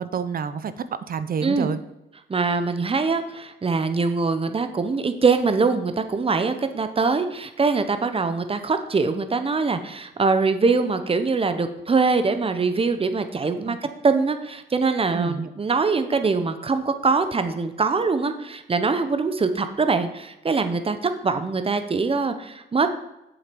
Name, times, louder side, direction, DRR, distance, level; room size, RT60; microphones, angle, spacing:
voice 1, 0.0-1.8 13.6-13.8 15.1-15.5, right 6 dB, 45° right, 13 dB, 0.8 m, -28 dB
voice 2, 2.3-13.8 14.0-22.9, right 4 dB, 30° right, 9 dB, 1.1 m, -23 dB
8.0 x 7.7 x 5.3 m, 0.91 s
cardioid pair, 90°, 20 cm